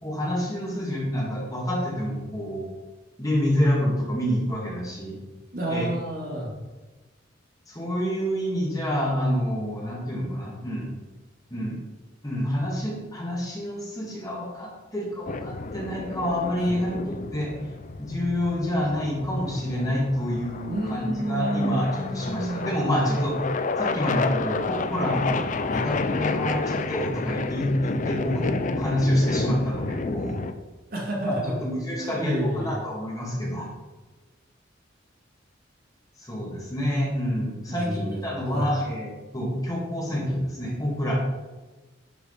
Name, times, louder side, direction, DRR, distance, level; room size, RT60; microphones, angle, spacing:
voice 1, 0.0-2.7 3.2-5.2 5.7-5.9 7.7-10.9 11.5-11.8 12.2-17.5 18.0-23.4 23.8-30.4 31.6-33.7 36.2-41.1, equal, 20° left, -4 dB, 2.3 m, -27 dB
voice 2, 5.5-6.5 16.6-16.8 20.7-23.0 25.7-25.9 30.9-32.8 37.7-38.7, right 1 dB, 50° right, -3 dB, 2.7 m, -30 dB
sound 1, 15.3-30.5, left 3 dB, 40° left, 0.5 m, -30 dB
11.0 x 5.0 x 5.1 m, 1.2 s
head